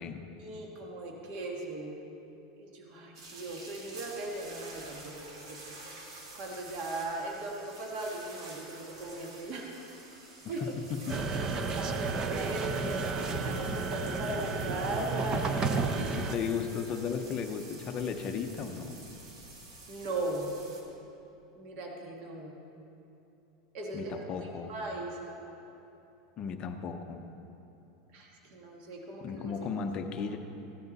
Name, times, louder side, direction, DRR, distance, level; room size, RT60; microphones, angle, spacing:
voice 1, 0.4-2.0 2.6-5.6 6.3-9.8 10.5-10.7 11.3-11.4 11.7-16.2 19.9-20.5 21.5-22.6 23.7-25.4 28.1-29.4, right 2 dB, 45° right, 0 dB, 1.5 m, -38 dB
sound 1, 3.1-20.8, right 2 dB, 85° right, 2.3 m, -49 dB
voice 2, 10.4-11.2 16.2-19.0 23.9-24.7 26.4-27.3 29.2-30.4, left 6 dB, 30° left, 6 dB, 0.6 m, -35 dB
sound 2, 11.1-16.4, right 4 dB, 25° right, 0.6 m, -32 dB
15.0 x 10.5 x 4.1 m, 2.9 s
supercardioid pair, 160°, 3 cm